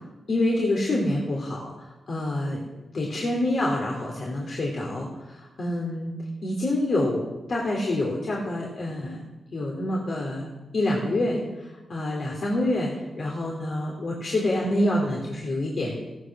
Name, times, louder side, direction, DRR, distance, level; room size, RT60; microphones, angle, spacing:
voice 1, 0.3-1.7 2.1-2.6 2.9-5.1 5.3-6.1 6.4-9.2 9.5-10.5 10.7-16.0, left 1 dB, 60° left, -2 dB, 3.6 m, -27 dB
16.0 x 12.5 x 6.3 m, 1.1 s
cardioid pair, 55°, 0 cm